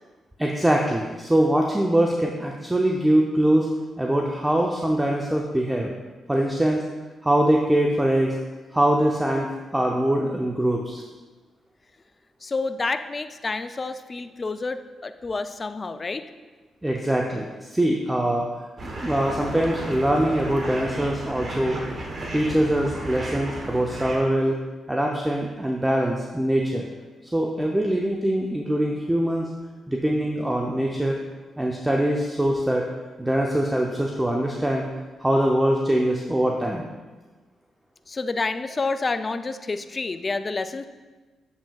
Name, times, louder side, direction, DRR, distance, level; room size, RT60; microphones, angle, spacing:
voice 1, 0.4-3.7 4.0-5.9 6.3-6.8 7.2-8.4 8.7-11.0 16.8-18.5 19.0-21.8 22.3-24.6 24.9-26.9 27.3-29.5 29.9-31.2 31.6-32.9 33.2-34.9 35.2-36.8, right 1 dB, 15° right, 0 dB, 0.7 m, -23 dB
voice 2, 12.4-16.3 38.1-40.9, left 3 dB, 40° left, 11 dB, 0.4 m, -29 dB
sound 1, 18.8-24.2, right 1 dB, 50° right, 1.3 m, -34 dB
7.3 x 7.1 x 2.4 m, 1.3 s
hypercardioid pair, 45°, 0 cm